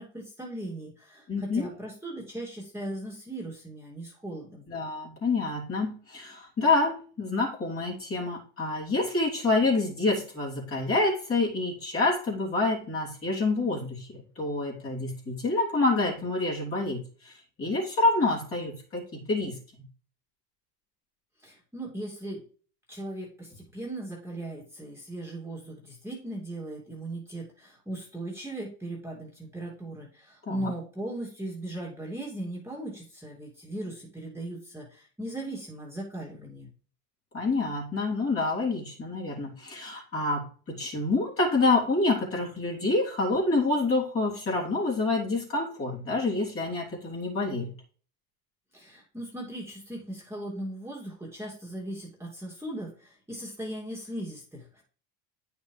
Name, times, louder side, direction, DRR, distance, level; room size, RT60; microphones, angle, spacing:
voice 1, 0.0-4.6 21.4-22.4 22.9-36.7 48.7-54.8, right 1 dB, 5° right, -4 dB, 2.7 m, -38 dB
voice 2, 1.3-1.7 4.7-17.3 17.6-19.6 30.5-30.7 37.3-47.7, left 3 dB, 30° left, -4 dB, 3.4 m, -27 dB
9.1 x 6.0 x 3.4 m, 0.42 s
supercardioid pair, 105°, 47 cm